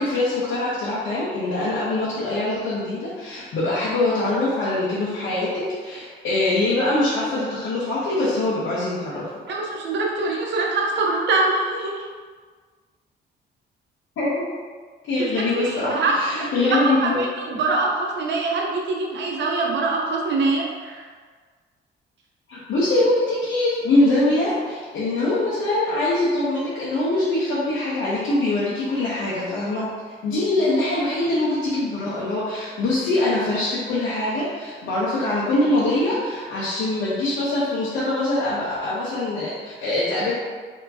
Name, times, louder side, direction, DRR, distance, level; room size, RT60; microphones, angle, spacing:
voice 1, 0.0-9.3 14.2-14.3 15.1-17.2 22.5-29.9 30.2-40.3, left 2 dB, 75° left, -9 dB, 0.9 m, -23 dB
voice 2, 9.5-11.9 15.2-15.3 15.6-21.0, right 3 dB, 65° right, -1 dB, 0.8 m, -24 dB
4.5 x 3.0 x 2.7 m, 1.5 s
cardioid pair, 90°, 20 cm